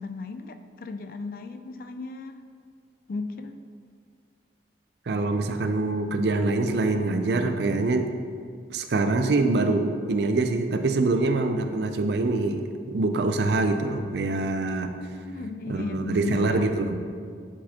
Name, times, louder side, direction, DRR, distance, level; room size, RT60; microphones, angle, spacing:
voice 1, 0.0-2.4 3.1-3.6 14.9-16.7, left 3 dB, 50° left, 9 dB, 0.3 m, -36 dB
voice 2, 5.1-8.1 8.7-14.9 15.7-17.0, right 2 dB, 65° right, 7 dB, 0.4 m, -25 dB
9.9 x 4.2 x 2.9 m, 2.1 s
head